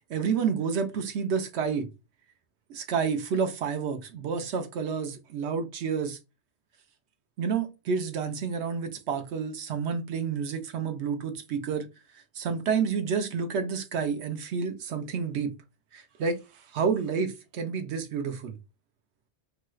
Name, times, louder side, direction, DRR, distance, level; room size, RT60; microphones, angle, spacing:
voice 1, 0.0-1.9 2.7-6.2 7.4-11.9 12.3-15.5 15.9-16.4 16.7-18.5, right 6 dB, 80° right, 0.9 m, -29 dB
3.0 x 2.3 x 3.0 m
omnidirectional pair, 1.1 m